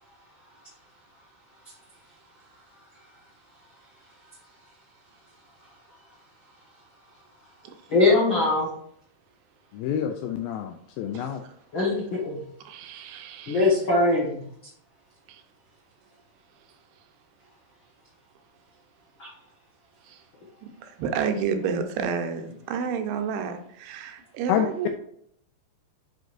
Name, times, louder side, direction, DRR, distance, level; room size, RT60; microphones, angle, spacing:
voice 1, 7.9-8.7 11.7-12.4 13.5-14.4, left 2 dB, 70° left, -4 dB, 1.1 m, -21 dB
voice 2, 9.7-11.4 24.5-24.7, left 9 dB, 85° left, 5 dB, 2.1 m, -27 dB
voice 3, 12.7-13.6 15.3-15.4 20.0-20.2 20.6-24.9, right 6 dB, 80° right, 6 dB, 2.8 m, -30 dB
9.3 x 5.1 x 2.6 m, 0.68 s
omnidirectional pair, 4.6 m